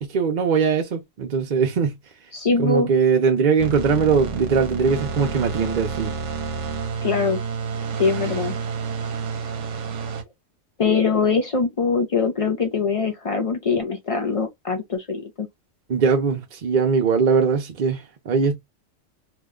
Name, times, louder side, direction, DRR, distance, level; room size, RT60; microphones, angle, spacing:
voice 1, 0.0-2.0 2.6-6.1 15.9-18.6, right 5 dB, 50° right, 0.6 m, -21 dB
voice 2, 2.3-2.9 7.0-7.4 8.0-8.6 10.8-15.5, left 4 dB, 60° left, 0.3 m, -22 dB
sound 1, 3.6-10.2, right 5 dB, 70° right, 1.0 m, -29 dB
2.9 x 2.1 x 3.5 m
omnidirectional pair, 1.3 m